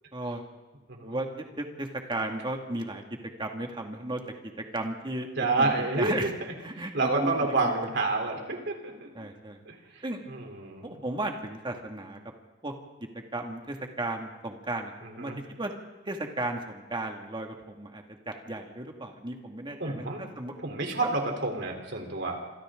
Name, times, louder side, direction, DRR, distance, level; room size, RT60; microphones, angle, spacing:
voice 1, 0.1-0.4 1.0-5.3 5.6-6.3 6.6-7.7 9.1-9.6 10.0-10.2 10.8-12.2 12.6-12.7 13.3-15.7 16.1-20.5 21.0-21.1, right 2 dB, 25° right, 2 dB, 2.3 m, -35 dB
voice 2, 5.4-6.1 6.9-9.3 9.7-9.8 10.3-10.9 15.2-15.4 19.8-20.2 20.6-22.4, right 3 dB, 65° right, 2 dB, 3.9 m, -29 dB
27.5 x 27.0 x 3.9 m, 1.2 s
head